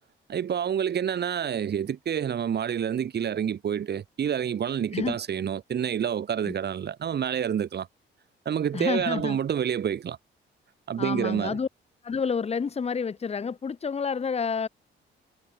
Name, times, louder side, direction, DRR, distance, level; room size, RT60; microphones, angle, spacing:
voice 1, 0.3-7.9 8.5-10.2 10.9-11.6, right 8 dB, 55° right, 3.6 m, -28 dB
voice 2, 8.7-9.4 11.0-11.7 12.0-14.7, left 5 dB, 30° left, 1.2 m, -29 dB
cardioid pair, 90°, 20 cm